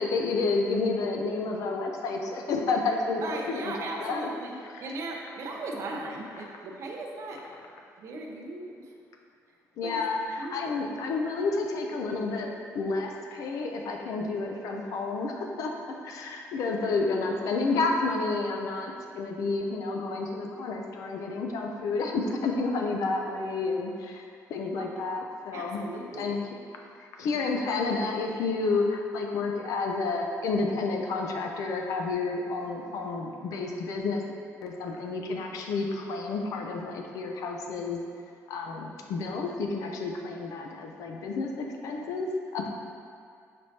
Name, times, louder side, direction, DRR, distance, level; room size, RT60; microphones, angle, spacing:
voice 1, 0.0-4.3 4.7-4.9 9.8-24.2 24.5-25.8 26.1-26.4 27.2-34.2 34.6-38.0 38.5-42.7, left 3 dB, 65° left, 2 dB, 0.5 m, -30 dB
voice 2, 3.2-7.4 8.0-8.9 9.8-10.0 10.4-10.9 24.7-24.9 25.5-26.3, right 2 dB, 55° right, 0 dB, 0.5 m, -38 dB
5.9 x 3.1 x 2.8 m, 2.3 s
cardioid pair, 170°, 6 cm